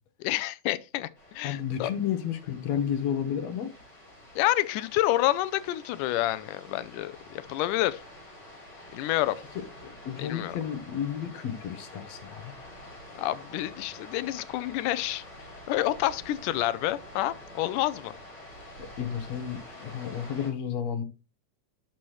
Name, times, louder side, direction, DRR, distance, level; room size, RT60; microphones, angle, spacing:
voice 1, 0.2-1.9 4.4-8.0 8.9-9.4 10.2-10.6 13.2-15.2 15.7-18.1, left 15 dB, 90° left, 2.2 m, -28 dB
sound 1, 1.2-20.5, left 1 dB, 30° left, 5.4 m, -48 dB
voice 2, 1.4-3.7 9.8-12.6 18.8-21.0, left 9 dB, 65° left, 2.1 m, -32 dB
11.5 x 5.9 x 3.1 m
omnidirectional pair, 3.6 m